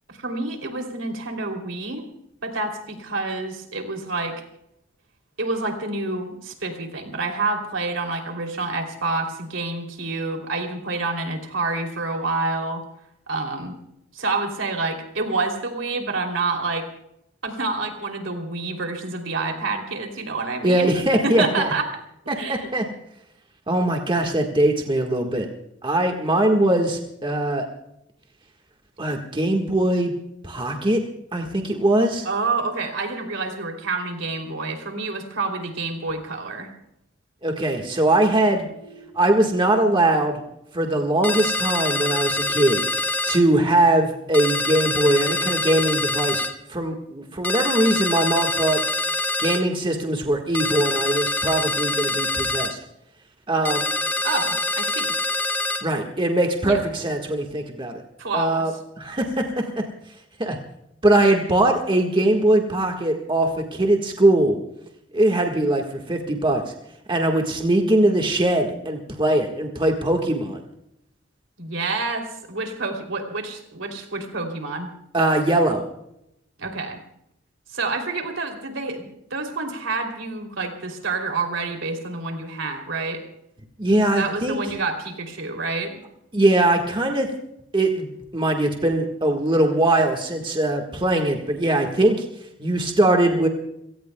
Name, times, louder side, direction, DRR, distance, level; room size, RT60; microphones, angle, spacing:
voice 1, 0.1-2.0 2.4-4.4 5.4-12.8 13.3-13.8 14.1-16.8 17.4-21.0 21.2-21.9 22.4-22.7 32.2-36.7 54.2-55.1 56.6-56.8 58.2-58.7 71.6-74.9 76.6-77.0 77.7-83.2 84.1-86.0, right 3 dB, 75° right, 4 dB, 3.1 m, -28 dB
voice 2, 20.6-21.4 22.3-22.8 23.7-25.5 25.8-27.6 29.0-30.1 30.4-31.0 31.3-32.3 37.4-38.6 39.1-40.4 40.7-42.8 43.3-48.8 49.4-52.8 53.5-53.9 55.8-58.0 58.3-58.7 59.0-59.8 60.4-60.6 61.0-64.6 65.1-66.7 67.1-70.6 75.1-75.8 83.8-84.6 86.3-87.3 87.7-92.2 92.6-93.5, right 1 dB, 25° right, 2 dB, 1.6 m, -21 dB
sound 1, 38.7-39.7 41.7-42.7 44.7-45.7, right 2 dB, 85° left, 2.4 m, -47 dB
sound 2, 41.2-43.4 44.3-46.5 47.4-49.6 50.5-52.7 53.6-55.8, left 2 dB, 10° left, 1.0 m, -25 dB
29.0 x 17.5 x 2.3 m, 0.80 s
head